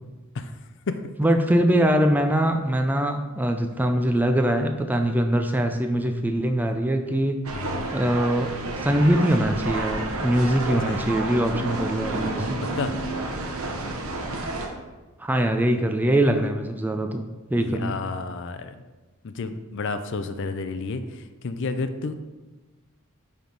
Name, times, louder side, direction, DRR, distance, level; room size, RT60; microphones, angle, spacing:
voice 1, 1.2-7.4 7.9-8.5 8.8-12.6 15.2-17.2 17.5-18.0, right 1 dB, 10° right, 5 dB, 0.4 m, -22 dB
sound 1, 7.4-14.7, right 2 dB, 85° right, 0.9 m, -30 dB
voice 2, 7.5-7.9 10.8-11.0 12.8-12.9 17.6-18.8 19.2-22.1, left 3 dB, 60° left, 9 dB, 0.5 m, -31 dB
9.3 x 3.6 x 3.9 m, 1.2 s
head